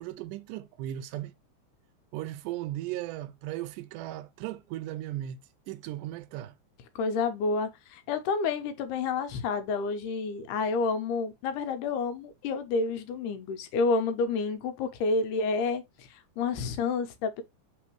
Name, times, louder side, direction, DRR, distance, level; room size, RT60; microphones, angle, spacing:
voice 1, 0.0-1.3 2.1-5.4 5.7-6.5, right 14 dB, 85° right, 2.1 m, -36 dB
voice 2, 7.0-17.4, left 4 dB, 85° left, 2.2 m, -29 dB
4.2 x 3.7 x 3.0 m
omnidirectional pair, 3.6 m